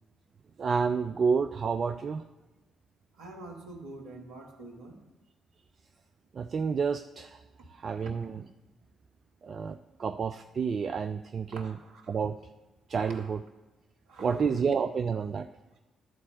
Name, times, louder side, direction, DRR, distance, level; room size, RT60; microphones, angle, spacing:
voice 1, 0.6-2.2 6.3-7.4 7.7-8.4 9.4-11.8 12.1-12.4 12.9-13.4 14.2-15.5, right 5 dB, 45° right, 9 dB, 0.3 m, -29 dB
voice 2, 3.2-5.0 7.6-7.7 7.9-8.3 11.5-12.2 13.0-13.5 14.1-14.6, right 2 dB, 65° right, 1 dB, 1.2 m, -46 dB
10.5 x 4.2 x 7.8 m, 1.1 s
figure-of-eight pair, 40°, 0 cm